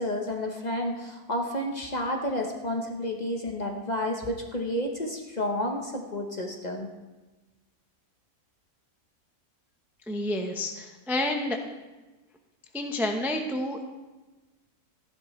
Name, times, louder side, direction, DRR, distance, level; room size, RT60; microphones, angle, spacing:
voice 1, 0.0-6.9, left 1 dB, 30° left, 2 dB, 0.9 m, -31 dB
voice 2, 10.1-11.6 12.7-13.9, left 1 dB, ahead, 3 dB, 0.6 m, -29 dB
15.0 x 11.5 x 3.2 m, 1.2 s
omnidirectional pair, 1.7 m